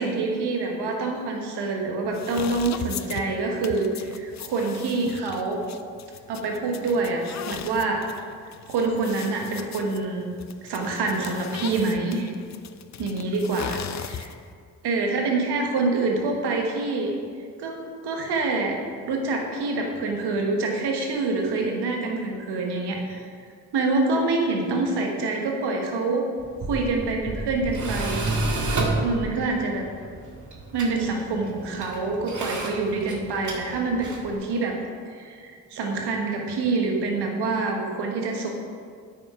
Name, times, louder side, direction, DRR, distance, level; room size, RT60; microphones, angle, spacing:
voice 1, 0.0-5.6 6.3-8.0 8.7-10.3 10.6-12.3 13.0-14.3 14.8-17.1 17.6-18.8 19.1-23.2 23.7-26.3 26.7-28.3 29.0-29.9 30.7-34.8 35.1-38.5, right 3 dB, 75° right, 2 dB, 1.4 m, -26 dB
sound 1, 2.1-14.5, left 9 dB, 45° left, 0.5 m, -39 dB
Tools, 26.4-34.4, right 2 dB, 45° right, 1.8 m, -31 dB
8.6 x 6.5 x 4.8 m, 2.1 s
hypercardioid pair, 40°, 40 cm